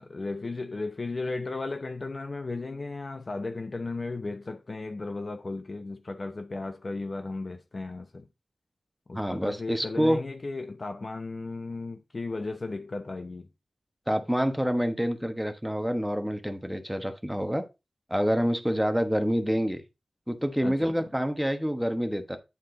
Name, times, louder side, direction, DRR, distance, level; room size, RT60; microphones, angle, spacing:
voice 1, 0.0-8.3 9.1-13.5 20.6-21.0, left 3 dB, 40° left, 0.8 m, -35 dB
voice 2, 9.1-10.2 14.1-17.6 18.1-19.8 20.3-22.4, equal, ahead, 1.1 m, -27 dB
9.6 x 4.3 x 3.9 m
wide cardioid pair, 115°, 0 cm